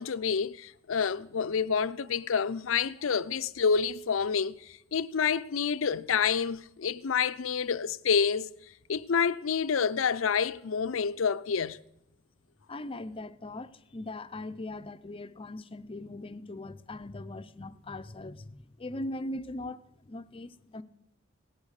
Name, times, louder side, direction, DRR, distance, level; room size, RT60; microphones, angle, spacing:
voice 1, 0.0-8.5 8.9-11.8, left 6 dB, 80° left, 0.6 m, -28 dB
voice 2, 12.7-20.8, left 2 dB, 25° left, 0.6 m, -40 dB
17.5 x 8.6 x 6.5 m
head